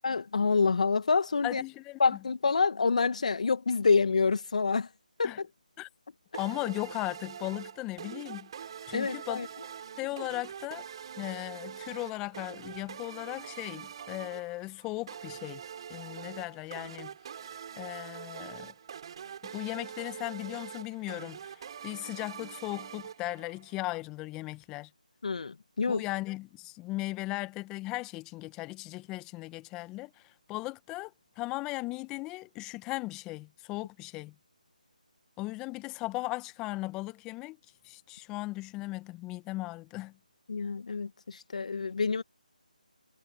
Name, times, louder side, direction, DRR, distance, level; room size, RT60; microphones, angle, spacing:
voice 1, 0.0-1.6 2.0-4.9 5.2-5.5 8.9-9.5 25.2-26.0 40.5-42.2, left 4 dB, 55° left, 2.3 m, -27 dB
voice 2, 1.4-2.2 5.2-5.4 5.8-5.9 6.4-8.5 8.9-9.4 10.0-10.8 11.2-15.6 15.9-17.1 17.7-18.7 19.4-24.9 25.9-34.3 35.4-37.6 37.8-40.1, left 20 dB, 15° left, 1.5 m, -37 dB
sound 1, 6.3-23.8, right 8 dB, 35° right, 5.3 m, -44 dB
figure-of-eight pair, 155°, 5 cm